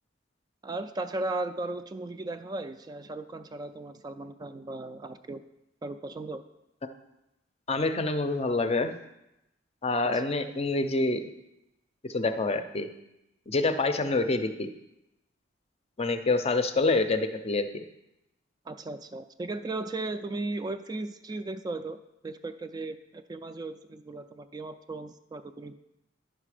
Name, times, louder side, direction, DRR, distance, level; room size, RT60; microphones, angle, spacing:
voice 1, 0.6-5.4 5.8-6.4 10.1-10.2 18.7-22.0 22.2-25.7, right 2 dB, 20° right, 9 dB, 0.3 m, -36 dB
voice 2, 7.7-8.9 9.8-11.3 12.1-12.9 13.5-14.7 16.0-17.9, left 3 dB, 35° left, 9 dB, 0.5 m, -27 dB
9.9 x 5.9 x 4.9 m, 0.90 s
head